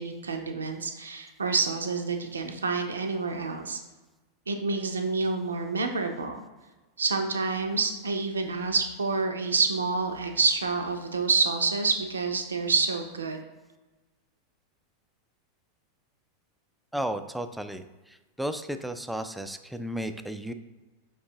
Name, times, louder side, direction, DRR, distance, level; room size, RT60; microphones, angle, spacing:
voice 1, 0.0-3.8 4.5-6.4 7.0-13.4, right 4 dB, 70° right, 4 dB, 0.4 m, -28 dB
voice 2, 16.9-20.5, right 1 dB, ahead, 9 dB, 0.3 m, -34 dB
5.3 x 3.6 x 2.6 m, 1.2 s
figure-of-eight pair, 90°, 0 cm